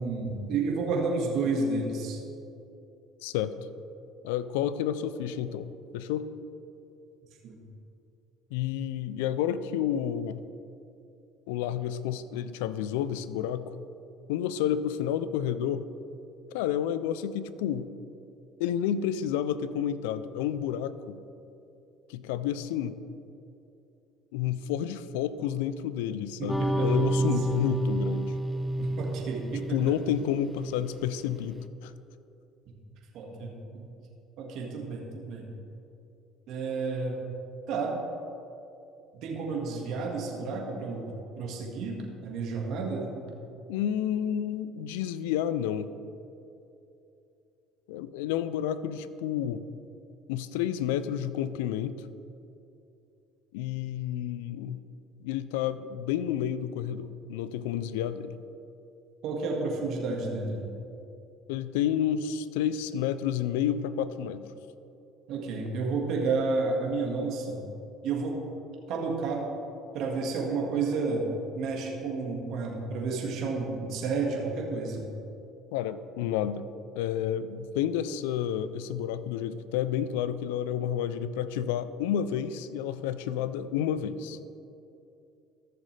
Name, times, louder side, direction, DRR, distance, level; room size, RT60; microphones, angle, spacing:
voice 1, 0.0-2.2 7.4-7.6 26.4-27.3 28.8-29.8 33.1-33.9 34.4-35.5 36.5-37.2 37.7-38.0 39.1-43.1 59.2-60.6 65.3-67.6 68.0-68.4 68.9-69.4 69.9-71.3 71.5-75.0, right 4 dB, 65° right, -1 dB, 1.8 m, -31 dB
voice 2, 4.2-6.3 8.5-10.4 11.5-13.7 14.3-15.8 16.5-17.9 18.6-21.2 22.1-23.0 24.3-28.4 29.7-31.9 43.7-45.9 47.9-49.6 50.3-52.0 53.5-54.8 55.2-58.4 61.5-64.4 75.7-76.7 76.9-84.4, left 10 dB, 85° left, 14 dB, 0.4 m, -30 dB
sound 1, 26.5-31.3, right 1 dB, 5° left, 0.5 m, -30 dB
14.5 x 6.7 x 3.3 m, 2.7 s
supercardioid pair, 90°, 0 cm